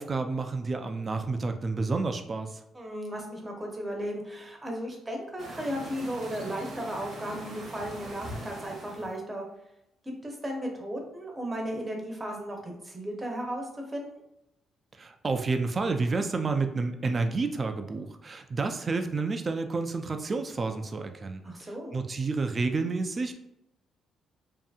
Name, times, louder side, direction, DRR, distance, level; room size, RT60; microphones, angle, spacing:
voice 1, 0.0-2.6 15.0-23.3, right 3 dB, 35° right, 6 dB, 0.3 m, -30 dB
voice 2, 2.7-9.5 10.2-14.1 21.4-21.9, equal, 20° right, 1 dB, 0.7 m, -35 dB
sound 1, 5.4-9.1, right 1 dB, 60° right, 0.8 m, -42 dB
2.6 x 2.6 x 2.3 m, 0.84 s
cardioid pair, 90°, 0 cm